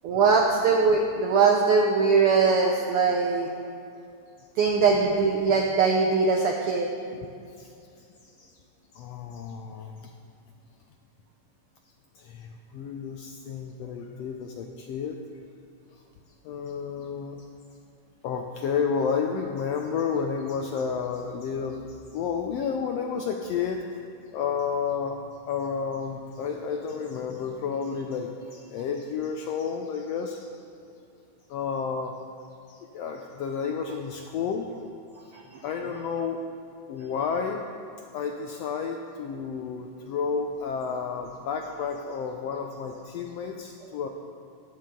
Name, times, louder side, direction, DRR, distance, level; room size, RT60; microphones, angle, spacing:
voice 1, 0.0-3.5 4.6-6.9 35.3-35.4, right 4 dB, 80° right, 1 dB, 1.2 m, -21 dB
voice 2, 7.2-7.7 8.2-8.5 8.9-10.1 12.1-15.2 16.4-17.5 18.2-23.9 24.3-25.2 25.5-30.5 31.5-32.2 32.7-34.7 35.6-36.4 36.9-37.6 38.1-44.1, left 6 dB, 80° left, 3 dB, 1.4 m, -31 dB
14.0 x 10.5 x 3.8 m, 2.5 s
omnidirectional pair, 3.5 m